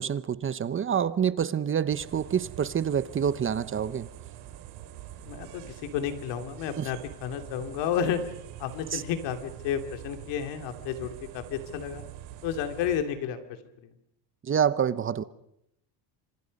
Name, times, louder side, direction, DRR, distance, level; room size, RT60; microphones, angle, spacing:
voice 1, 0.0-4.1 6.8-6.9 8.9-9.0 14.4-15.2, right 8 dB, 30° right, 0.8 m, -27 dB
sound 1, 1.9-13.0, right 12 dB, 90° right, 3.5 m, -45 dB
voice 2, 5.2-8.2 8.6-12.1 12.4-13.4 13.8-13.9, left 8 dB, 85° left, 2.9 m, -31 dB
28.0 x 26.0 x 5.4 m
cardioid pair, 125°, 42 cm